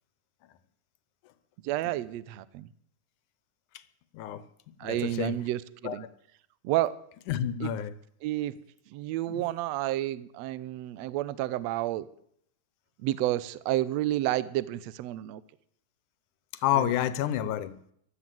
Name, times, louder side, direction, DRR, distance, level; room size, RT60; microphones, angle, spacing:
voice 1, 1.6-2.7 4.8-6.1 6.6-6.9 7.6-7.7 8.2-8.6 8.9-12.1 13.0-15.4 16.8-16.9, right 15 dB, 75° right, 17 dB, 1.7 m, -30 dB
voice 2, 4.1-4.4 4.8-5.4 5.8-6.0 7.3-7.9 9.3-9.4 16.6-17.8, left 11 dB, 80° left, 14 dB, 2.4 m, -29 dB
15.0 x 12.0 x 7.7 m, 0.69 s
omnidirectional pair, 3.6 m